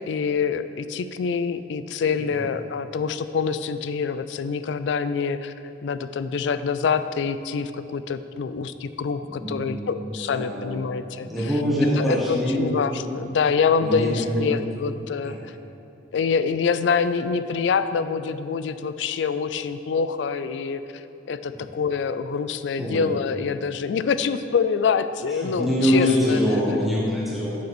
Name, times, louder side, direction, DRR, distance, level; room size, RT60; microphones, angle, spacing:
voice 1, 0.0-5.5 5.8-11.5 12.0-15.5 16.1-26.4, left 5 dB, 80° left, 12 dB, 0.3 m, -26 dB
voice 2, 9.3-10.8 11.3-12.8 13.8-14.9 15.2-15.4 22.8-23.0 25.4-27.6, equal, ahead, -8 dB, 1.2 m, -24 dB
6.8 x 5.2 x 6.1 m, 2.7 s
head